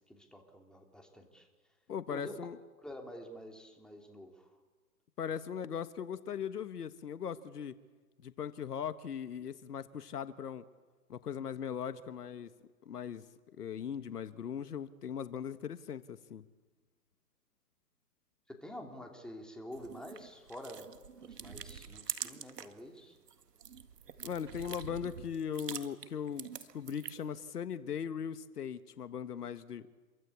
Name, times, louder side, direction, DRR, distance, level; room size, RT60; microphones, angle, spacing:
voice 1, 0.1-1.5 2.1-2.3 2.8-4.5 18.5-20.9 21.2-23.2, equal, ahead, 2 dB, 3.0 m, -48 dB
voice 2, 1.9-2.6 5.2-7.8 8.2-10.6 11.1-12.5 12.8-16.4 24.2-29.9, left 8 dB, 75° left, 12 dB, 1.5 m, -39 dB
sound 1, 19.7-22.8 23.2-27.4, right 7 dB, 80° right, 2.1 m, -45 dB
27.5 x 23.5 x 8.5 m, 1.3 s
hypercardioid pair, 140°, 47 cm